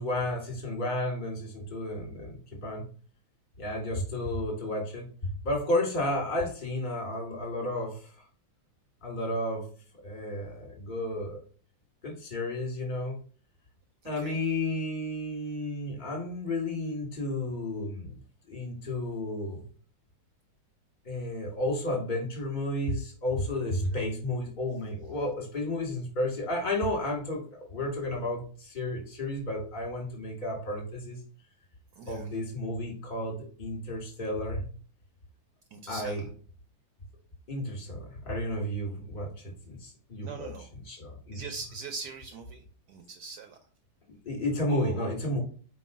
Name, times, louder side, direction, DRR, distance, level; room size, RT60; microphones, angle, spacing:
voice 1, 0.0-2.8 3.6-8.1 9.0-9.7 10.0-11.4 12.0-13.2 14.0-18.2 18.5-19.6 21.0-31.2 32.1-34.6 35.9-36.3 37.5-40.5 40.8-41.5 44.1-45.4, left 1 dB, 25° left, 1 dB, 1.3 m, -32 dB
voice 2, 14.0-14.4 23.9-24.0 32.0-32.3 35.7-36.2 40.2-40.7 41.3-43.6 44.7-45.1, right 5 dB, 70° right, 5 dB, 1.0 m, -42 dB
4.7 x 3.0 x 3.5 m, 0.41 s
omnidirectional pair, 2.1 m